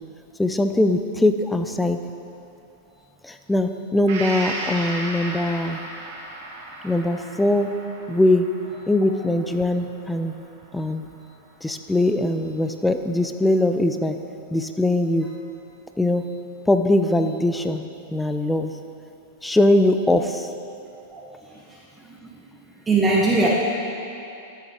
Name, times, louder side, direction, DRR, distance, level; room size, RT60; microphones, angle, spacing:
voice 1, 0.4-2.0 3.2-5.8 6.8-7.7 8.1-8.5 8.9-10.3 10.7-11.1 11.6-14.2 14.5-15.3 16.0-16.2 16.7-17.8 18.1-18.8 19.4-20.5, left 1 dB, 5° left, 7 dB, 0.5 m, -21 dB
Gong, 4.1-11.7 12.1-12.2, right 2 dB, 60° right, 2.0 m, -35 dB
voice 2, 22.9-23.5, right 3 dB, 15° right, -4 dB, 1.1 m, -20 dB
12.5 x 7.0 x 4.4 m, 2.8 s
hypercardioid pair, 115°, 0 cm